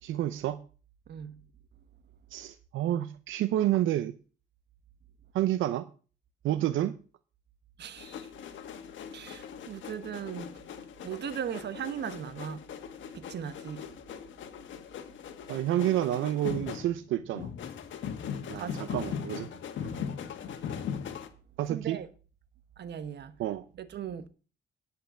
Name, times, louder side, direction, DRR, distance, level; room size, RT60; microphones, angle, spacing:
voice 1, 0.0-0.6 2.3-4.1 5.3-5.9 6.4-7.0 15.5-17.5 18.5-19.5 21.6-22.0 23.4-23.6, right 13 dB, 85° right, 0.6 m, -29 dB
voice 2, 7.8-8.3 9.1-10.6 11.0-12.7 13.1-13.9 18.5-18.8 19.8-20.1 21.6-22.1 22.8-23.3 23.8-24.3, right 8 dB, 60° right, 1.1 m, -38 dB
sound 1, 8.0-21.3, left 7 dB, 70° left, 1.5 m, -40 dB
10.5 x 5.5 x 7.6 m
cardioid pair, 90°, 20 cm